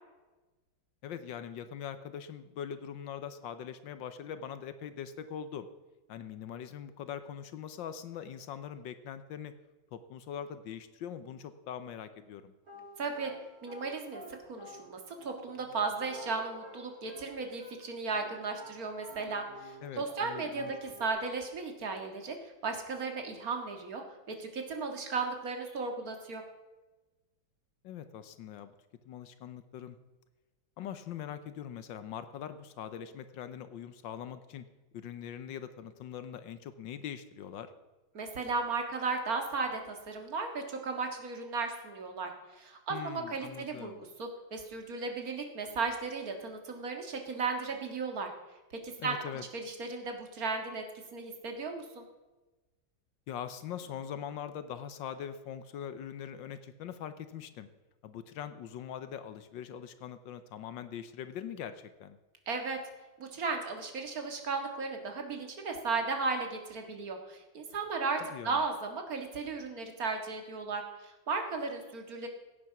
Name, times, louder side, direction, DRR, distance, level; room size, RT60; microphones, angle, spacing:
voice 1, 1.0-5.7 6.1-9.5 9.9-12.5 19.8-20.7 27.8-28.7 29.0-30.0 30.8-34.6 34.9-37.7 42.9-44.0 49.0-49.4 53.3-57.7 58.0-62.2 68.3-68.6, left 9 dB, 70° left, 12 dB, 1.4 m, -42 dB
sound 1, 12.6-20.3 20.5-21.1, equal, 90° right, 5.7 m, -50 dB
voice 2, 13.0-13.3 13.6-14.2 14.5-26.4 38.1-43.9 44.2-48.3 48.7-49.2 49.5-50.9 51.1-52.0 62.5-62.8 63.2-72.3, right 4 dB, 45° right, 4 dB, 2.1 m, -35 dB
16.0 x 8.8 x 5.9 m, 1.2 s
omnidirectional pair, 2.2 m